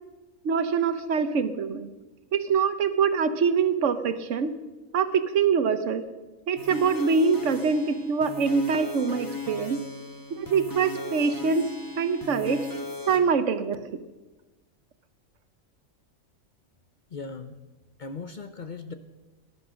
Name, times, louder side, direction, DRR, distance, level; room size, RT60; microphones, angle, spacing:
voice 1, 0.4-1.9 2.3-4.5 4.9-6.0 6.5-9.8 10.3-12.7 13.1-13.8, right 5 dB, 65° right, 11 dB, 1.3 m, -24 dB
sound 1, 6.6-13.2, left 2 dB, 15° left, 1.4 m, -37 dB
voice 2, 17.1-17.6 18.0-18.9, left 4 dB, 45° left, 9 dB, 0.7 m, -38 dB
18.5 x 11.5 x 6.3 m, 1.2 s
omnidirectional pair, 1.4 m